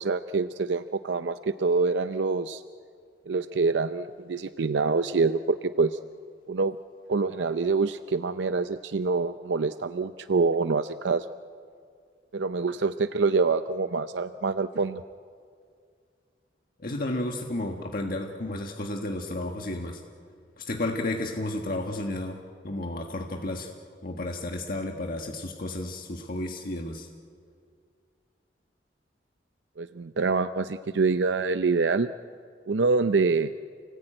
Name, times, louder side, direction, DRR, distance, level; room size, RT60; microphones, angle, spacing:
voice 1, 0.0-2.6 3.3-6.0 6.5-6.8 7.1-11.3 12.3-15.0 29.8-32.1 32.7-33.5, right 4 dB, 80° right, 11 dB, 0.6 m, -26 dB
voice 2, 16.8-20.0 20.6-23.7 24.0-27.1, left 1 dB, 55° left, 2 dB, 1.6 m, -32 dB
29.0 x 18.5 x 9.0 m, 2.2 s
head